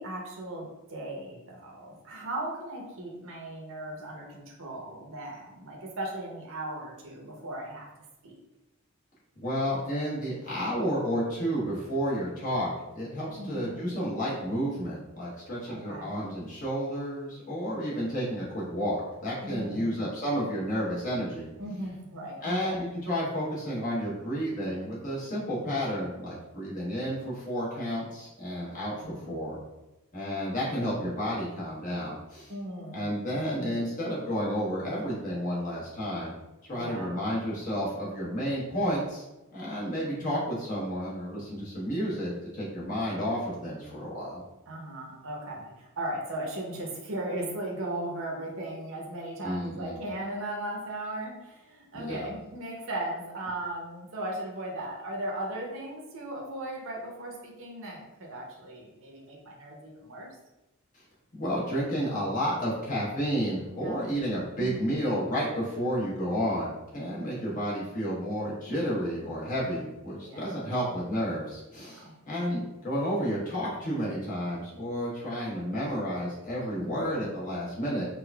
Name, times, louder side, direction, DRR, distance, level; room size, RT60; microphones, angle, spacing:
voice 1, 0.0-7.9 8.2-8.4 13.3-14.0 15.7-16.1 19.4-20.0 21.6-22.8 29.0-29.4 32.5-33.8 36.7-37.2 44.7-60.3 63.8-64.1 64.6-65.0 70.2-70.6 71.8-72.1 76.8-77.3, right 1 dB, 60° right, -1 dB, 0.8 m, -37 dB
voice 2, 9.4-21.5 22.4-29.6 30.1-32.5 32.9-36.3 36.7-39.2 39.5-44.4 49.4-50.0 51.9-52.3 61.3-78.1, equal, 35° left, -7 dB, 1.2 m, -31 dB
4.8 x 2.7 x 2.3 m, 0.99 s
head